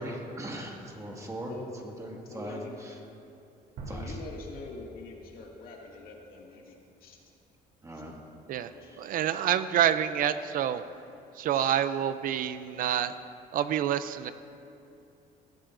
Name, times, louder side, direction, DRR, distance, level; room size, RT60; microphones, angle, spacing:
voice 1, 0.0-1.6 2.0-2.6 3.9-4.2 7.8-8.1 8.9-9.0, right 1 dB, 20° right, -1 dB, 1.9 m, -39 dB
voice 2, 1.5-1.9 2.3-2.7 3.8-6.7 7.0-7.2 8.5-9.0 9.3-9.4 10.1-10.3 11.5-11.8, left 3 dB, 65° left, -1 dB, 2.1 m, -44 dB
sound 1, 3.8-6.7, right 2 dB, 90° right, 3.1 m, -44 dB
voice 3, 9.0-10.8 11.4-13.1 13.5-14.3, right 10 dB, 60° right, 12 dB, 0.4 m, -27 dB
19.0 x 13.5 x 2.6 m, 2.6 s
cardioid pair, 120°, 16 cm